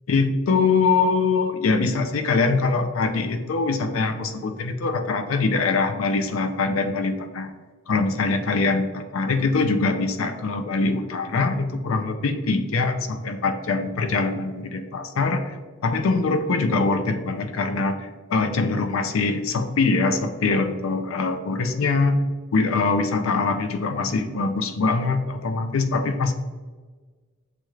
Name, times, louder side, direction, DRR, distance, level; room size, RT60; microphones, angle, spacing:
voice 1, 0.1-7.5 7.9-15.6 15.8-22.2 22.5-26.3, left 3 dB, 75° left, 8 dB, 0.5 m, -23 dB
6.7 x 2.4 x 3.1 m, 1.4 s
head